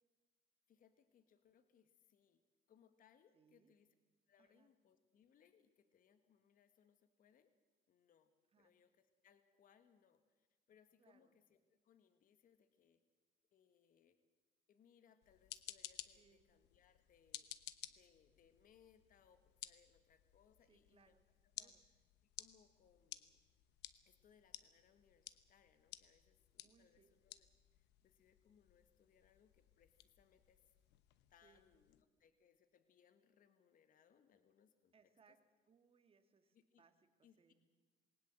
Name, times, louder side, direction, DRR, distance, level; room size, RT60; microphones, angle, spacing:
voice 1, 0.7-2.4 2.7-3.9 4.3-7.5 7.9-8.3 8.6-13.0 13.5-14.2 14.7-17.5 17.9-21.2 21.6-22.0 22.4-23.4 24.0-30.6 31.3-34.9 35.3-35.4 36.5-36.8 37.2-37.5, left 8 dB, 55° left, 10 dB, 1.6 m, -72 dB
voice 2, 3.3-3.7 4.4-4.7 8.5-8.7 11.0-11.3 16.1-16.5 20.7-21.2 21.6-21.8 26.6-27.1 31.4-31.6 34.9-35.4 35.7-37.5, right 6 dB, 35° right, 8 dB, 2.2 m, -72 dB
sound 1, 15.2-32.0, left 15 dB, 85° left, 1.1 m, -57 dB
20.5 x 19.5 x 7.7 m, 1.4 s
cardioid pair, 110°, 17 cm